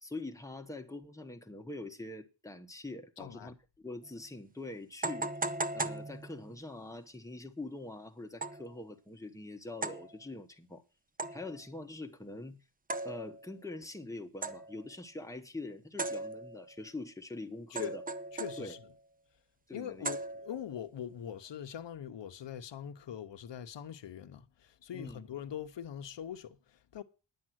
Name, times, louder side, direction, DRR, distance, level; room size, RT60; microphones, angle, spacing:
voice 1, 0.0-5.4 5.7-10.8 11.3-12.6 13.0-18.0 18.6-18.7 19.7-20.1 24.9-25.2, left 2 dB, 5° left, 1.2 m, -44 dB
voice 2, 3.2-3.5 17.7-18.0 18.3-18.8 19.7-27.0, left 9 dB, 60° left, 1.0 m, -42 dB
sound 1, 4.0-4.1 5.0-6.7 8.4-8.7 9.8-10.1 11.2-11.6 12.9-13.5 14.4-14.8 16.0-16.7 17.8-18.9 20.0-20.7, right 2 dB, 20° right, 0.6 m, -38 dB
10.5 x 7.5 x 6.3 m
wide cardioid pair, 130°, 49 cm